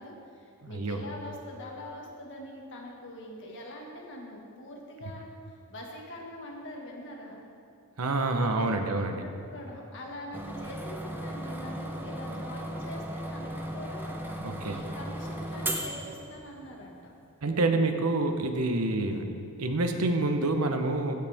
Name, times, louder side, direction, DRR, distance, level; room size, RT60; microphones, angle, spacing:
voice 1, 0.0-7.4 8.5-8.9 9.2-17.1, left 1 dB, 55° left, -1 dB, 1.8 m, -44 dB
voice 2, 0.6-1.0 8.0-9.2 14.4-14.8 17.4-19.3 19.6-21.1, right 2 dB, 75° right, 6 dB, 0.9 m, -27 dB
sound 1, 10.3-16.8, right 1 dB, 10° right, 0.7 m, -36 dB
16.0 x 8.0 x 3.5 m, 2.8 s
head